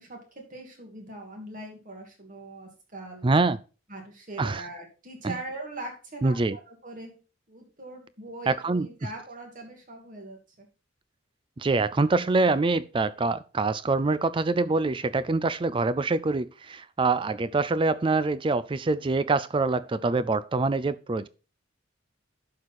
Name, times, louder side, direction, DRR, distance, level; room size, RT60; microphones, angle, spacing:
voice 1, 0.0-3.3 3.9-7.2 7.5-10.7, right 2 dB, 40° right, 2.6 m, -41 dB
voice 2, 3.2-3.6 4.4-4.7 5.2-5.4 6.2-6.6 8.5-8.9 11.6-21.3, right 3 dB, 25° right, 0.4 m, -25 dB
11.5 x 4.8 x 4.2 m
head